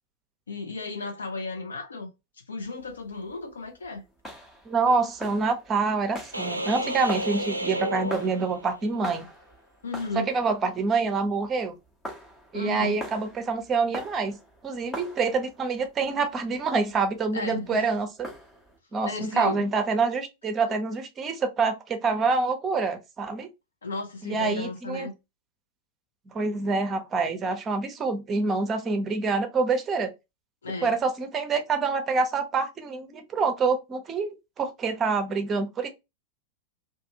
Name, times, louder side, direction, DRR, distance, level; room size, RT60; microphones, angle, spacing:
voice 1, 0.5-2.1 2.5-4.0 9.8-10.3 12.5-13.0 17.3-17.9 19.0-19.7 23.8-25.1 30.6-30.9, left 3 dB, 70° left, 0.8 m, -34 dB
sound 1, 2.6-18.8, equal, 15° left, 0.8 m, -44 dB
voice 2, 4.7-9.2 10.1-11.7 12.5-14.4 14.6-18.3 18.9-23.5 24.2-25.1 26.3-30.1 30.8-35.9, right 4 dB, 25° right, 0.7 m, -26 dB
sound 2, 6.3-9.0, right 1 dB, 85° right, 0.4 m, -31 dB
2.5 x 2.5 x 2.7 m
figure-of-eight pair, 90°, 0 cm